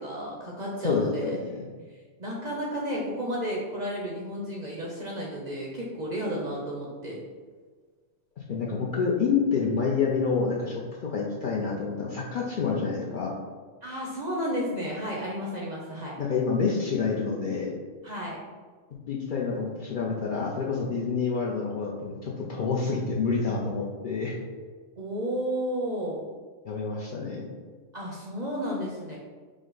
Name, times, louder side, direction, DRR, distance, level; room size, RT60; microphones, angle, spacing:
voice 1, 0.0-1.4 2.2-7.2 13.8-16.2 18.0-18.4 25.0-26.2 27.9-29.2, equal, 50° right, -3 dB, 0.5 m, -32 dB
voice 2, 0.8-1.7 8.5-13.3 16.2-17.7 19.1-24.4 26.7-27.5, left 5 dB, 60° left, -3 dB, 0.5 m, -28 dB
5.0 x 2.1 x 3.8 m, 1.5 s
omnidirectional pair, 1.3 m